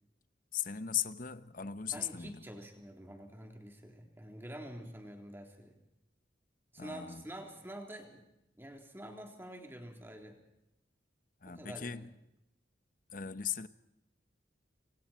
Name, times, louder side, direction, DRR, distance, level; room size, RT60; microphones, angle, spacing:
voice 1, 0.5-2.4 6.8-7.2 11.4-12.1 13.1-13.7, left 9 dB, 45° left, 0.9 m, -38 dB
voice 2, 1.9-5.8 6.7-8.2 8.5-10.4 11.4-12.1, right 1 dB, 10° right, 3.6 m, -47 dB
27.0 x 24.0 x 4.4 m
head